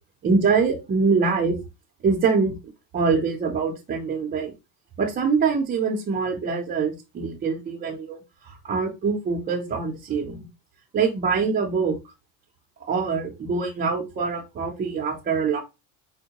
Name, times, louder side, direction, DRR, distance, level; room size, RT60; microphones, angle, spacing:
voice 1, 0.2-1.6 2.0-2.5 2.9-4.5 5.0-10.5 10.9-12.0 12.8-15.6, right 5 dB, 25° right, -2 dB, 0.6 m, -24 dB
4.5 x 2.1 x 2.8 m, 0.25 s
cardioid pair, 130°, 42 cm